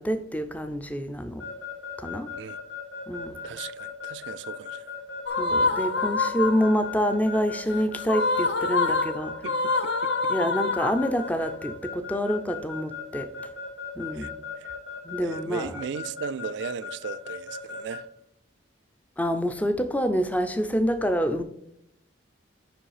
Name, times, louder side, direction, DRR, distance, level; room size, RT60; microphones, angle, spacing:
voice 1, 0.0-1.5 2.0-2.3 3.1-3.4 5.4-9.3 10.3-13.3 14.0-14.3 15.0-15.8 19.2-21.4, equal, 10° left, 0.4 m, -27 dB
Keyboard (musical) / Alarm, 1.4-18.0, left 6 dB, 80° left, 2.0 m, -37 dB
voice 2, 3.4-4.9 9.4-10.3 14.1-14.3 14.6-14.7 15.2-18.1, right 6 dB, 65° right, 0.3 m, -37 dB
sound 1, 5.3-6.9 8.0-11.4, left 3 dB, 65° left, 0.6 m, -26 dB
5.5 x 5.0 x 4.8 m
head